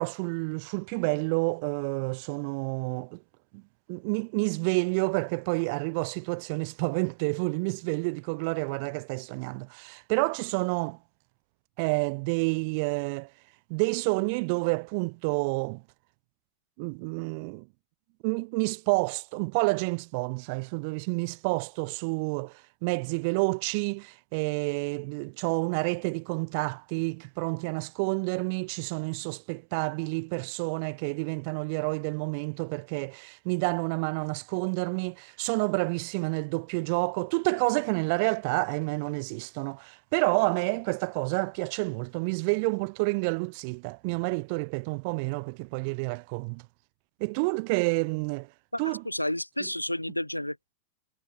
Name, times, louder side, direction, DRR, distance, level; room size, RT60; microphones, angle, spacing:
voice 1, 0.0-3.2 3.5-3.6 3.9-11.0 11.8-13.3 13.7-15.8 16.8-17.6 18.2-22.5 22.8-46.6 47.2-48.5 48.8-49.0, right 32 dB, 45° right, 3.2 m, -29 dB
voice 2, 48.7-50.6, left 1 dB, 85° left, 4.8 m, -31 dB
figure-of-eight pair, 90°, 0 cm